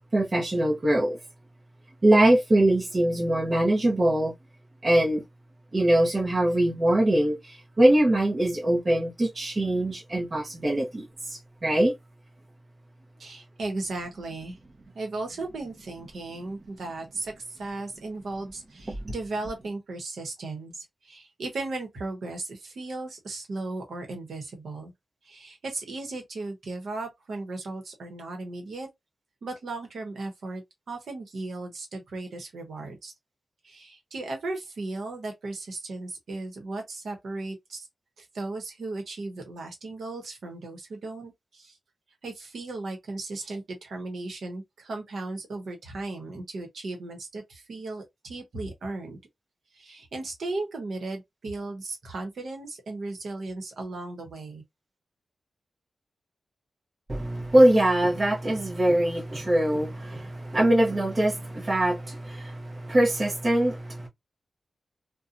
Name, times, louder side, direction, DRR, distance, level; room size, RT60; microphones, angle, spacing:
voice 1, 0.1-1.2 2.0-4.3 4.8-5.2 5.7-11.9 18.9-19.0 57.1-64.1, right 1 dB, 35° right, 0.9 m, -23 dB
voice 2, 13.2-14.6 14.9-24.9 25.2-28.9 29.4-33.1 33.6-37.9 38.2-41.8 42.2-49.2 49.7-54.6, right 2 dB, 75° right, 1.0 m, -36 dB
2.7 x 2.2 x 2.5 m
cardioid pair, 80°, 0 cm